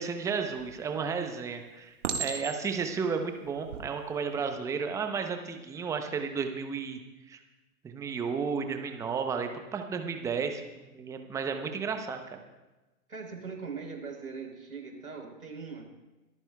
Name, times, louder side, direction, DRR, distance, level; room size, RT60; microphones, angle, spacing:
voice 1, 0.0-1.9 2.2-7.0 7.3-7.4 7.8-10.6 10.9-12.4, right 5 dB, 5° right, 6 dB, 0.7 m, -33 dB
Chink clink, 0.5-1.1 2.0-2.8 3.6-3.8, right 6 dB, 55° right, 1.7 m, -34 dB
voice 2, 13.1-15.9, right 5 dB, 90° right, 1 dB, 4.3 m, -41 dB
25.5 x 14.0 x 2.3 m, 1.1 s
hypercardioid pair, 125°, 44 cm